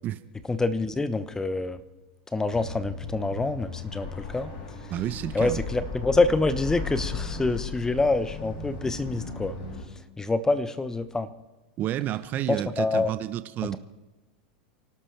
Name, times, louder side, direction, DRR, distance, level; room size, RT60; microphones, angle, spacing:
voice 1, 0.5-1.8 2.3-4.5 5.3-9.6 10.2-11.3 12.5-13.1, left 3 dB, 10° left, 13 dB, 1.1 m, -26 dB
sound 1, 2.5-9.8, left 4 dB, 50° left, 5.8 m, -36 dB
voice 2, 4.9-5.6 11.8-13.8, right 12 dB, 40° right, 13 dB, 0.8 m, -30 dB
29.0 x 12.5 x 3.4 m, 1.1 s
hypercardioid pair, 105°, 5 cm